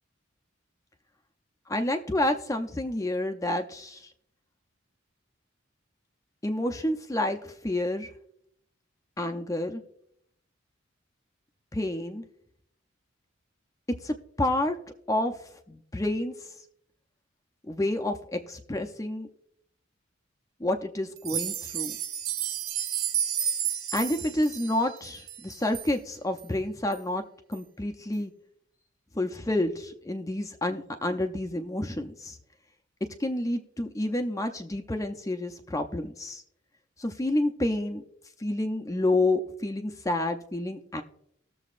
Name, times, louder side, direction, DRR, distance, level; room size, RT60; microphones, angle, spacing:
voice 1, 1.7-4.1 6.4-8.1 9.2-9.8 11.7-12.2 14.0-14.8 15.1-15.4 15.7-16.3 17.7-19.3 20.6-21.9 23.9-27.2 27.5-28.3 29.1-32.4 33.2-36.4 37.0-38.0 38.4-41.0, left 1 dB, 15° left, 5 dB, 0.5 m, -29 dB
sound 1, 21.2-25.9 26.4-26.5 26.9-27.0 27.5-27.6, right 9 dB, 90° right, 0.7 m, -31 dB
19.0 x 7.0 x 2.5 m, 0.72 s
head